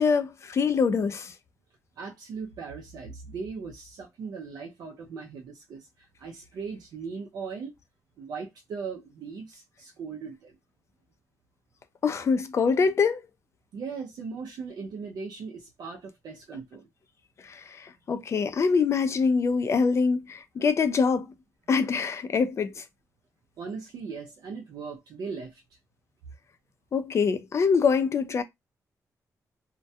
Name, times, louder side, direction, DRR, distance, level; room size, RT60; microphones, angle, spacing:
voice 1, 0.0-1.3 12.0-13.2 17.4-21.3 21.7-22.8 26.9-28.4, left 5 dB, 45° left, 0.4 m, -24 dB
voice 2, 2.0-7.8 8.2-10.6 13.7-16.9 23.6-25.6, right 5 dB, 85° right, 0.5 m, -38 dB
2.2 x 2.2 x 2.6 m
cardioid pair, 115°, 7 cm